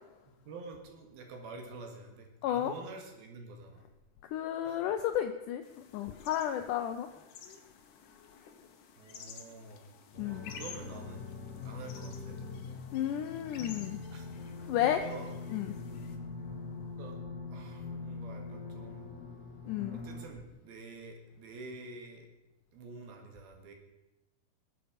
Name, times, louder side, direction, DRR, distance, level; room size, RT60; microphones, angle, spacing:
voice 1, 0.5-3.8 4.6-4.8 7.2-7.3 9.0-9.9 10.2-11.3 11.6-12.4 14.1-14.3 14.7-15.3 16.9-17.2 17.5-19.2 19.9-22.3 22.7-23.7, right 3 dB, 75° right, 3 dB, 3.7 m, -47 dB
voice 2, 2.4-2.7 4.2-7.1 10.2-10.5 12.9-14.0 14.7-15.0 15.5-15.7 19.7-20.0, left 11 dB, 80° left, 7 dB, 1.8 m, -32 dB
sound 1, 5.6-16.2, left 7 dB, 65° left, 2.5 m, -52 dB
sound 2, 10.1-20.3, left 4 dB, 25° left, 2.1 m, -43 dB
20.5 x 8.3 x 5.2 m, 0.96 s
omnidirectional pair, 4.4 m